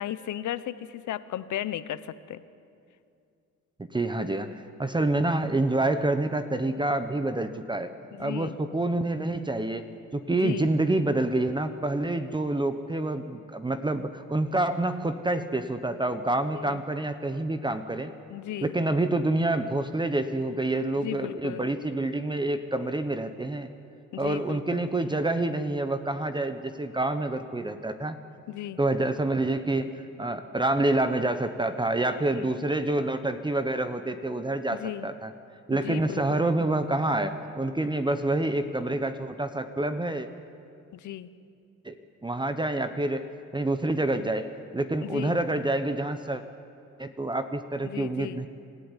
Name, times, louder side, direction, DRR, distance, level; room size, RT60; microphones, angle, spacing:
voice 1, 0.0-2.4 8.1-8.6 10.3-10.7 16.5-16.8 18.3-18.7 21.0-21.7 24.1-24.9 28.5-28.8 32.3-32.5 34.7-35.1 35.7-36.5 40.9-41.3 45.0-45.4 47.8-48.4, left 12 dB, 75° left, 15 dB, 1.0 m, -35 dB
voice 2, 3.8-7.9 8.2-9.9 10.1-18.1 18.6-23.7 24.2-28.2 28.8-35.3 35.7-40.3 41.8-42.0 42.2-43.3 43.5-46.4 47.0-48.5, right 2 dB, 15° right, 9 dB, 1.0 m, -27 dB
26.5 x 14.5 x 9.9 m, 2.5 s
cardioid pair, 90°, 30 cm